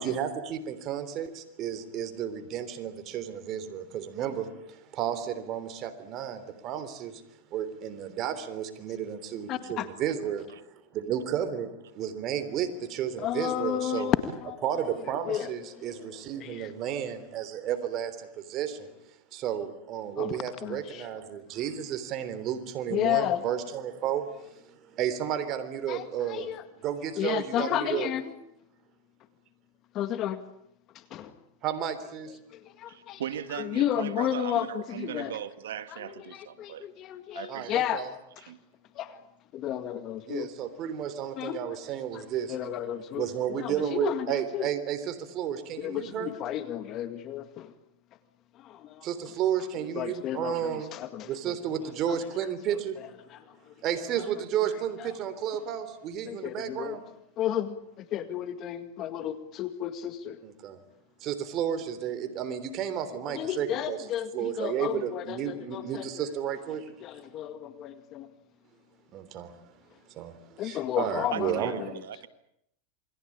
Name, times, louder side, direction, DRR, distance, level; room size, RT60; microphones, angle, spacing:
voice 1, 0.0-7.2 7.5-14.1 14.6-18.9 19.3-26.5 26.8-28.1 31.6-32.3 37.5-38.1 40.3-46.3 49.0-50.9 51.2-53.0 53.8-57.0 60.4-60.8 61.2-64.0 64.3-66.9 69.1-69.6 70.1-71.8, right 9 dB, 40° right, 3.5 m, -32 dB
voice 2, 9.5-9.9 13.2-14.6 15.3-16.7 20.2-21.1 22.9-23.4 25.9-26.6 27.2-28.4 30.0-30.4 30.9-31.3 32.5-33.2 33.5-35.4 35.9-38.0 38.4-38.5 38.9-39.2 39.5-40.5 41.4-41.6 42.1-42.2 42.5-44.7 45.8-47.7 48.5-49.1 50.0-51.5 51.8-52.2 53.0-53.7 54.2-54.3 55.0-55.1 56.2-57.0 57.4-60.4 63.3-66.3 67.0-68.3 70.6-72.0, left 11 dB, 40° left, 2.0 m, -33 dB
voice 3, 32.9-36.9 37.3-37.7 38.5-38.6 71.3-72.3, right 10 dB, 90° right, 1.7 m, -38 dB
28.0 x 22.0 x 8.7 m
supercardioid pair, 130°, 0 cm